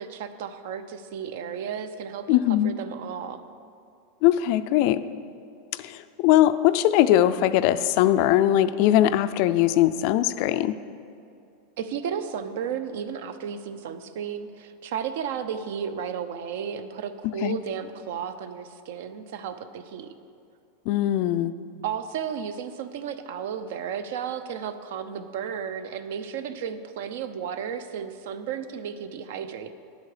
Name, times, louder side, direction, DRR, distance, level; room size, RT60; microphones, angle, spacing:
voice 1, 0.0-2.4 2.6-3.4 11.8-20.1 21.8-29.7, right 7 dB, 65° right, 11 dB, 0.6 m, -33 dB
voice 2, 2.3-2.7 4.2-5.0 5.8-10.8 17.4-17.6 20.9-21.5, left 13 dB, 45° left, 13 dB, 0.3 m, -21 dB
10.0 x 8.1 x 5.0 m, 2.5 s
supercardioid pair, 165°, 0 cm